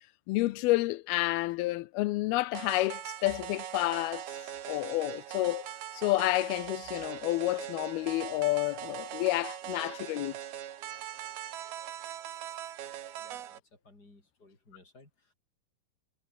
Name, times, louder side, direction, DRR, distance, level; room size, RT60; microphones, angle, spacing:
voice 1, 0.3-4.3 4.7-10.3, left 19 dB, 85° left, 2.2 m, -30 dB
sound 1, 2.5-13.6, right 11 dB, 60° right, 3.4 m, -41 dB
voice 2, 13.2-15.3, left 2 dB, 20° left, 6.7 m, -58 dB
omnidirectional pair, 5.3 m